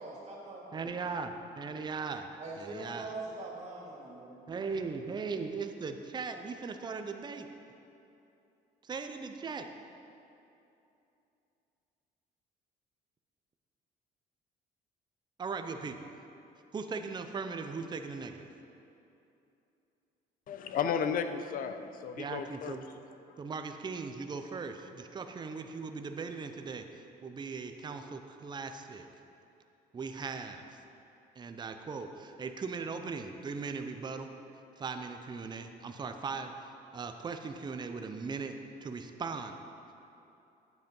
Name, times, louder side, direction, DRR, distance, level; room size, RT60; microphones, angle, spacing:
voice 1, 0.0-0.9 2.4-4.4, right 2 dB, 40° right, -3 dB, 2.5 m, -43 dB
voice 2, 0.7-2.3 2.6-3.1 4.5-7.5 8.8-9.7 15.4-16.1 16.7-18.5 22.2-22.8 23.4-26.9 27.2-29.1 29.9-30.6 31.4-34.3 34.8-36.5 36.9-38.6 38.8-39.6, right 4 dB, 25° right, 7 dB, 0.6 m, -38 dB
voice 3, 20.5-22.8, left 7 dB, 55° left, 9 dB, 0.7 m, -33 dB
9.4 x 7.8 x 5.4 m, 2.8 s
cardioid pair, 110°, 17 cm